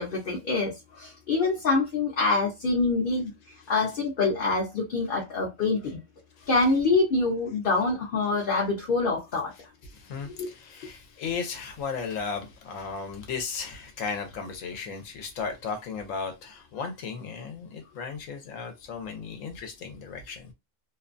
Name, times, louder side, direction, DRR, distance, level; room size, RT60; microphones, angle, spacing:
voice 1, 0.0-3.3 3.7-6.0 6.5-9.5 10.3-10.5, left 3 dB, 50° left, 0.7 m, -25 dB
voice 2, 9.8-20.5, left 5 dB, 80° left, 1.0 m, -35 dB
2.5 x 2.1 x 2.4 m
omnidirectional pair, 1.4 m